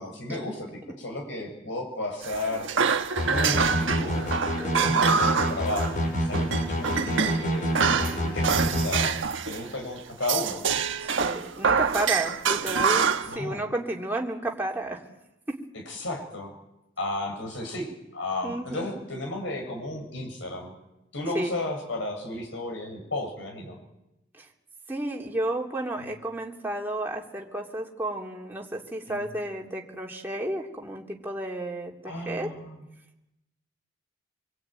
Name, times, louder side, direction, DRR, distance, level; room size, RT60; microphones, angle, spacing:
voice 1, 0.0-2.7 3.2-4.3 4.8-7.8 8.3-9.1 9.5-10.6 13.3-13.6 15.9-16.5 17.0-17.9 18.1-20.7 21.1-23.8 29.1-29.2 32.0-32.8, left 2 dB, 65° left, 2 dB, 7.5 m, -33 dB
sound 1, 2.2-6.0 6.3-7.4 7.8-9.7 10.2-13.4, right 5 dB, 70° right, 1.4 m, -26 dB
sound 2, 3.2-9.1, equal, 45° left, 7.4 m, -27 dB
voice 2, 4.6-5.2 8.0-8.8 11.0-15.0 15.5-15.6 18.4-19.0 21.3-21.5 24.4-24.5 24.9-32.5, right 1 dB, 10° right, -1 dB, 3.2 m, -32 dB
26.0 x 23.0 x 9.3 m, 0.91 s
head